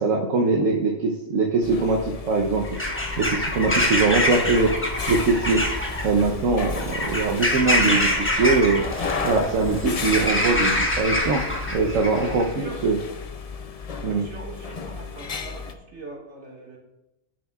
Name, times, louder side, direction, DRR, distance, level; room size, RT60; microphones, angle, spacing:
voice 1, 0.0-2.6 3.2-4.7 5.1-5.7 6.0-8.8 9.2-11.4 11.7-13.0 14.0-14.3, right 3 dB, 75° right, 0 dB, 1.2 m, -22 dB
sound 1, 1.6-15.7, left 5 dB, 45° left, 0.4 m, -35 dB
Bird vocalization bird call bird song / Crow, 2.6-12.5, left 1 dB, 10° left, 1.0 m, -25 dB
voice 2, 12.4-12.8 13.9-16.8, right 3 dB, 60° right, -2 dB, 2.2 m, -42 dB
10.5 x 9.0 x 2.4 m, 0.92 s
omnidirectional pair, 1.3 m